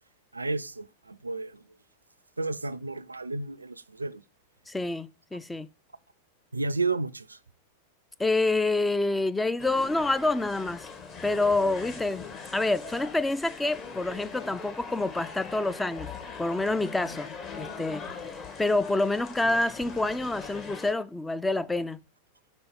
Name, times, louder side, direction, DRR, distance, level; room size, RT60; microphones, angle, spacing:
voice 1, 0.3-1.5 2.4-4.2 6.5-7.4, right 3 dB, 80° right, 0.3 m, -32 dB
voice 2, 4.7-5.7 8.2-10.9 11.2-12.3 12.5-16.1 16.4-17.3 17.5-18.3 18.6-22.0, left 2 dB, 10° left, 0.3 m, -27 dB
sound 1, 9.6-20.9, left 5 dB, 30° left, 1.3 m, -41 dB
5.3 x 4.2 x 5.2 m
figure-of-eight pair, 90°, 0 cm